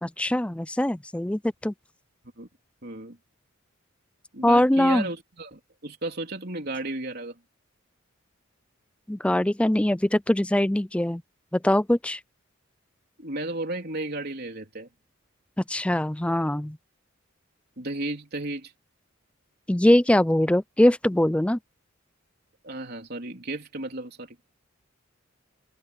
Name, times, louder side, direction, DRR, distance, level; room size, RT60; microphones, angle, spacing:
voice 1, 0.0-1.7 4.4-5.1 9.1-11.2 11.5-12.2 15.6-16.8 19.7-21.6, left 1 dB, 5° left, 0.4 m, -22 dB
voice 2, 2.8-3.2 4.3-7.4 13.2-14.9 17.8-18.7 22.6-24.4, right 2 dB, 50° right, 3.7 m, -34 dB
head